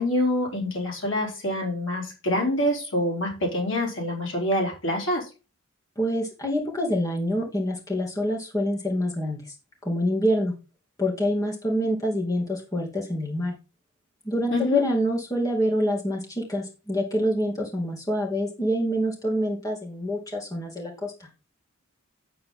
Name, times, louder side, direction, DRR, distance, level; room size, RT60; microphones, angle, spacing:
voice 1, 0.0-5.3 14.5-14.8, left 1 dB, 65° left, -1 dB, 3.9 m, -26 dB
voice 2, 6.0-9.4 9.8-10.5 11.0-13.5 14.2-21.3, equal, 15° left, -2 dB, 2.5 m, -26 dB
8.6 x 7.7 x 3.8 m, 0.30 s
head